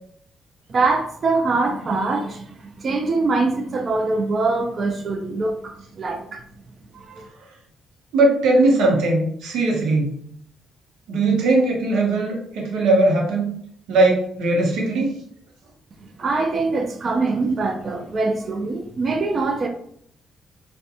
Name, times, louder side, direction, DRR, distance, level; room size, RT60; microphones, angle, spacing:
voice 1, 0.7-6.4 6.9-7.3 16.0-19.7, right 3 dB, 45° right, 5 dB, 0.4 m, -23 dB
voice 2, 8.1-10.1 11.1-13.5 13.9-15.1, right 2 dB, 90° right, -1 dB, 0.7 m, -19 dB
2.5 x 2.1 x 2.6 m, 0.66 s
cardioid pair, 90°, 0 cm